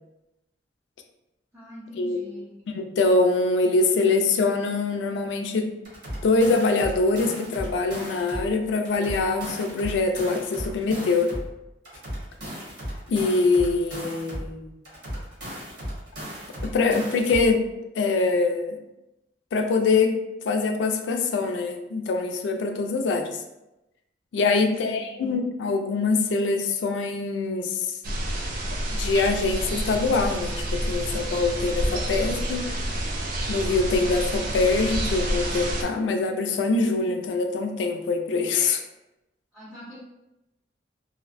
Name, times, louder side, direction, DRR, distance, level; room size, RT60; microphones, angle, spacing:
voice 1, 1.5-2.6 10.8-11.2 24.4-25.1 39.5-40.0, equal, 5° right, -9 dB, 0.6 m, -42 dB
voice 2, 2.7-5.8 6.2-11.3 13.1-14.7 16.6-17.7 17.9-18.8 19.5-20.2 20.4-23.4 24.3-28.2 28.9-32.7 33.5-38.8, left 3 dB, 75° left, 5 dB, 0.3 m, -24 dB
sound 1, 5.8-8.5 8.8-11.5 11.8-14.5 14.8-17.5, equal, 65° right, 1.0 m, -35 dB
sound 2, 28.0-35.8, right 1 dB, 50° right, 0.3 m, -28 dB
2.5 x 2.1 x 2.5 m, 0.93 s
head